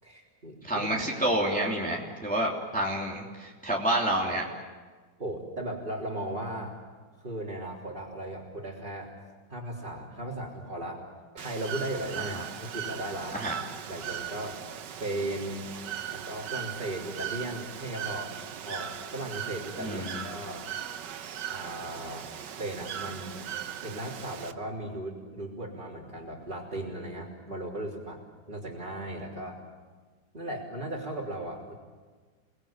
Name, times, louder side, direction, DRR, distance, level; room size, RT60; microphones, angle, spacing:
voice 1, 0.0-0.9 5.2-6.8 7.2-9.1 9.5-11.0 11.3-13.4 13.9-15.7 16.1-18.3 18.6-20.7 21.5-23.4 23.8-28.2 28.5-29.6 30.3-31.7, right 1 dB, 25° right, -6 dB, 3.9 m, -37 dB
voice 2, 0.6-4.4 12.3-12.5 13.3-13.5 19.8-20.2, right 1 dB, 5° left, -2 dB, 3.1 m, -29 dB
Bird / Water, 11.4-24.5, right 9 dB, 75° right, 1.6 m, -38 dB
30.0 x 20.5 x 8.9 m, 1.4 s
omnidirectional pair, 1.9 m